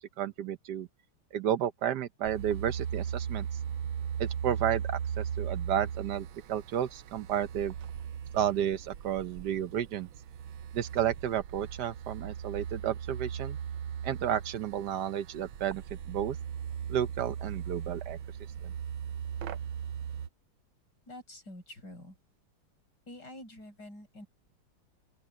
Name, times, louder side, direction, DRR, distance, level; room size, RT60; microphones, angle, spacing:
voice 1, 0.2-0.9 1.3-3.5 4.2-7.7 8.3-10.1 10.7-13.6 14.0-16.4 16.9-18.2 18.6-18.7, right 10 dB, 65° right, 1.2 m, -32 dB
sound 1, 2.2-20.3, right 8 dB, 85° right, 1.7 m, -38 dB
voice 2, 21.1-22.1 23.1-24.3, left 1 dB, 55° left, 6.7 m, -47 dB
open air
omnidirectional pair, 2.1 m